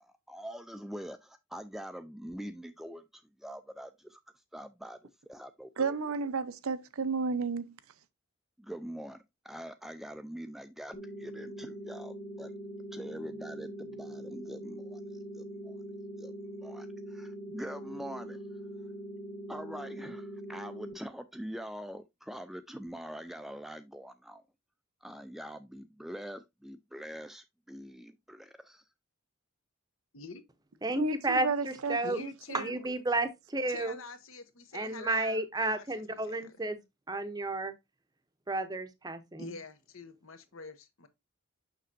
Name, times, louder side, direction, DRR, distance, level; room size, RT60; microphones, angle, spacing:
voice 1, 0.0-4.2 4.5-5.0 5.3-6.0 8.6-12.5 12.9-15.8 16.2-16.3 16.6-18.4 19.5-24.4 25.0-28.8, equal, ahead, 0.3 m, -44 dB
voice 2, 5.8-7.7 31.0-32.7, right 4 dB, 85° right, 0.7 m, -32 dB
sound 1, 10.9-20.9, right 1 dB, 35° left, 1.3 m, -43 dB
voice 3, 30.8-32.2 32.5-34.0 34.7-36.8 37.1-37.7 38.5-39.5, right 2 dB, 20° right, 0.7 m, -32 dB
voice 4, 32.0-32.8 33.7-36.8 39.4-41.1, left 3 dB, 75° left, 1.0 m, -46 dB
6.6 x 6.2 x 2.6 m
head